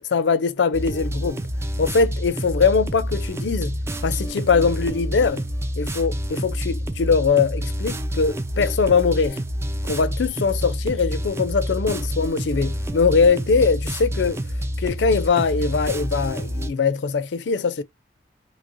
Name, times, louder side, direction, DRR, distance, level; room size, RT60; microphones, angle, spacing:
voice 1, 0.1-1.4 1.8-5.4 5.8-9.4 9.9-14.4 14.8-17.8, left 5 dB, 90° left, 0.4 m, -21 dB
sound 1, 0.7-16.7, equal, 15° right, 0.4 m, -28 dB
3.0 x 2.8 x 2.4 m
head